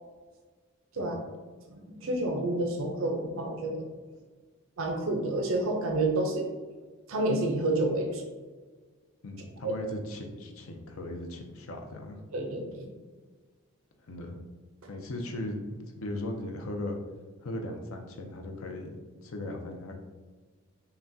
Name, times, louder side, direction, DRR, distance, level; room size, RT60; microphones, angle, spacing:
voice 1, 1.7-3.8 4.8-6.4 7.1-8.2 9.6-9.7 12.3-12.9, right 2 dB, 75° right, 2 dB, 0.6 m, -29 dB
voice 2, 9.2-12.2 14.1-14.4 14.9-17.0 17.4-20.0, left 1 dB, 80° left, 3 dB, 0.6 m, -38 dB
5.7 x 2.2 x 2.6 m, 1.4 s
head